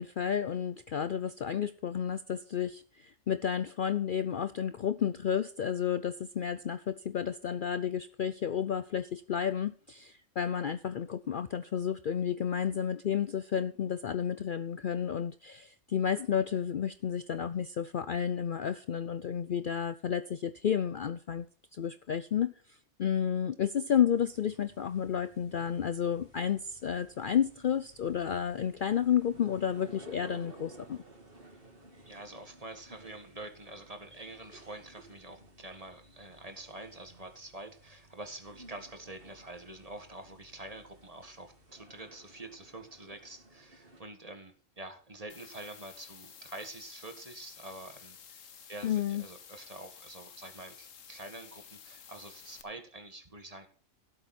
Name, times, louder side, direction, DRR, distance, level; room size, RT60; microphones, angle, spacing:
voice 1, 0.0-21.5 21.7-22.5 23.0-31.0 48.8-49.2, left 8 dB, 55° left, 12 dB, 0.7 m, -31 dB
sound 1, 24.1-44.0, right 2 dB, 45° right, 3.1 m, -56 dB
voice 2, 32.0-48.4 48.7-53.7, right 2 dB, 30° right, 7 dB, 1.9 m, -46 dB
sound 2, 45.3-52.6, left 7 dB, 85° left, 1.6 m, -52 dB
16.5 x 8.2 x 4.3 m, 0.43 s
omnidirectional pair, 1.3 m